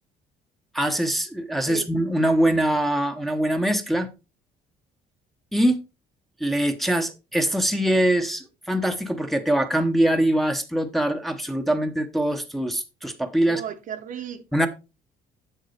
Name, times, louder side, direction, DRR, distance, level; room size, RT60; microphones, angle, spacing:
voice 1, 0.7-4.1 5.5-5.8 6.4-13.6 14.5-14.7, right 1 dB, ahead, 0.8 m, -23 dB
voice 2, 13.5-14.7, right 8 dB, 50° right, 0.8 m, -35 dB
7.3 x 6.6 x 3.2 m
cardioid pair, 110°, 17 cm